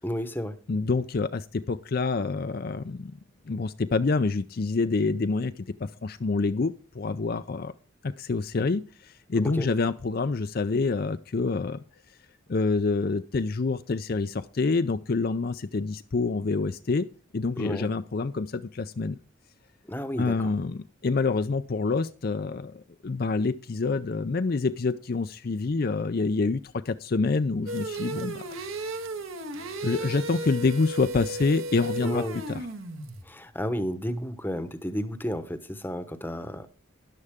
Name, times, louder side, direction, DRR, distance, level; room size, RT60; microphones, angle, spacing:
voice 1, 0.0-0.6 9.4-9.7 17.6-17.9 19.8-20.5 32.0-32.4 33.2-36.7, equal, 10° left, 11 dB, 0.9 m, -32 dB
voice 2, 0.7-3.1 3.5-7.7 8.0-11.8 12.5-17.1 17.3-19.2 20.2-28.4 29.8-32.6, left 3 dB, 45° left, 10 dB, 0.5 m, -27 dB
sound 1, 27.7-33.2, right 2 dB, 70° right, 1.8 m, -35 dB
13.0 x 11.0 x 3.6 m, 0.34 s
head